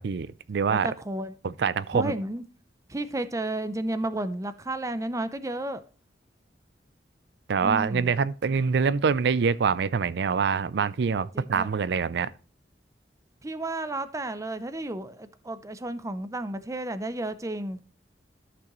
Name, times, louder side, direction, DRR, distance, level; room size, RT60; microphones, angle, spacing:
voice 1, 0.0-0.9 1.4-2.1 7.5-12.3, right 5 dB, 65° right, 0.4 m, -25 dB
voice 2, 0.7-1.5 1.9-2.4 2.9-5.8 7.6-8.2 11.3-11.7 13.4-17.8, right 1 dB, 20° right, 0.6 m, -32 dB
13.5 x 6.1 x 3.1 m
head